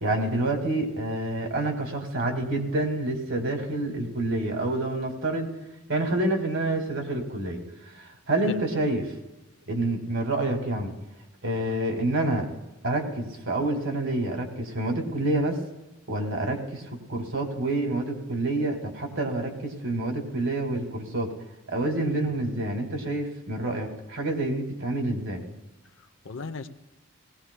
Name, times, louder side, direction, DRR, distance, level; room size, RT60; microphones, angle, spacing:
voice 1, 0.0-5.5 5.9-7.6 7.9-9.0 9.7-10.9 11.4-12.5 12.8-15.6 16.1-21.3 21.7-25.4, right 2 dB, 70° right, 3 dB, 2.1 m, -28 dB
voice 2, 26.0-26.7, left 4 dB, 65° left, 8 dB, 0.7 m, -38 dB
19.0 x 17.5 x 2.2 m, 1.0 s
head